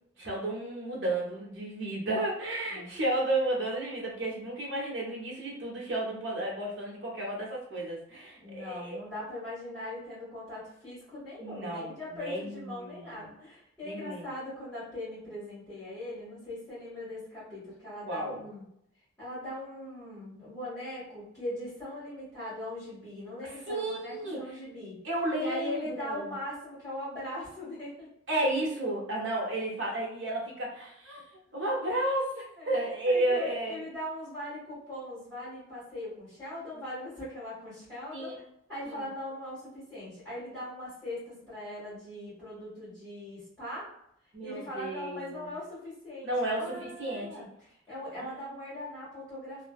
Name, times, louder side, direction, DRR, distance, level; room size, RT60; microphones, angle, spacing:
voice 1, 0.2-9.0 11.4-13.2 13.8-14.2 18.1-18.4 23.7-24.4 25.0-26.3 28.3-31.2 31.5-33.8 38.1-38.4 38.9-39.0 44.3-45.5 46.2-47.4 48.2-48.5, right 1 dB, 70° right, -3 dB, 0.9 m, -32 dB
voice 2, 8.4-18.7 19.2-25.0 25.4-28.1 32.6-43.9 44.4-49.6, left 1 dB, 5° left, -14 dB, 1.4 m, -40 dB
2.5 x 2.3 x 2.2 m, 0.75 s
head